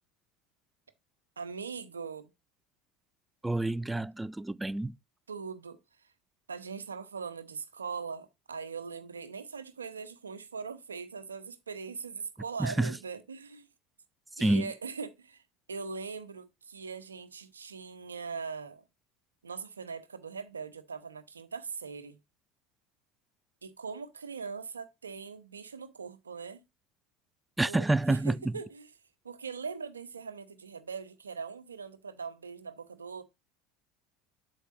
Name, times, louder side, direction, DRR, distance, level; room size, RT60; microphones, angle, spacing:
voice 1, 1.4-2.3 5.3-5.8 6.5-13.7 14.4-15.4 15.7-18.8 19.4-22.2 23.6-26.6 27.6-28.9 29.2-33.2, right 5 dB, 85° right, 0.9 m, -41 dB
voice 2, 3.4-5.0 12.6-12.9 14.4-14.7 27.6-28.3, right 2 dB, 10° right, 0.3 m, -28 dB
8.2 x 7.0 x 2.5 m
figure-of-eight pair, 70°, 0 cm